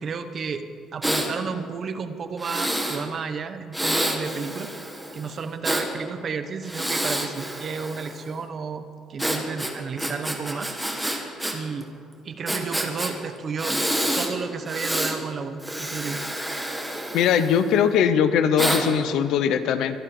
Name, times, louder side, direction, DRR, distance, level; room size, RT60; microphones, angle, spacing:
voice 1, 0.0-4.7 5.1-10.7 11.5-11.9 12.2-13.8 14.1-16.2, right 5 dB, 35° right, 9 dB, 1.0 m, -32 dB
Breathing, 1.0-1.3 2.4-3.0 3.7-5.9 6.6-8.3 9.2-11.5 11.8-11.9 12.5-13.1 13.6-14.3 14.7-15.2 15.6-17.8 18.6-18.8, right 1 dB, 5° right, 1.7 m, -28 dB
voice 2, 17.1-20.0, left 8 dB, 70° left, 11 dB, 0.9 m, -21 dB
23.5 x 12.0 x 5.0 m, 2.4 s
cardioid pair, 150°, 0 cm